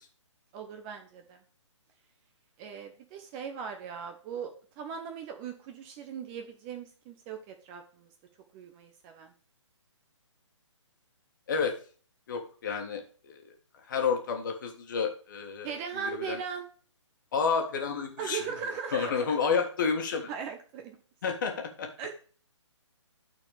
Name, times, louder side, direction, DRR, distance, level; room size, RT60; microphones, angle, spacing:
voice 1, 0.5-1.4 2.6-8.1 8.5-9.3 15.6-16.6 18.2-19.4 20.3-21.0 22.0-22.1, right 7 dB, 20° right, 5 dB, 0.7 m, -39 dB
voice 2, 12.3-13.4 13.9-15.8 16.0-16.4 17.3-18.4 18.9-20.3 21.2-21.9, left 5 dB, 40° left, 4 dB, 1.6 m, -30 dB
12.0 x 4.4 x 3.4 m, 0.41 s
figure-of-eight pair, 135°, 16 cm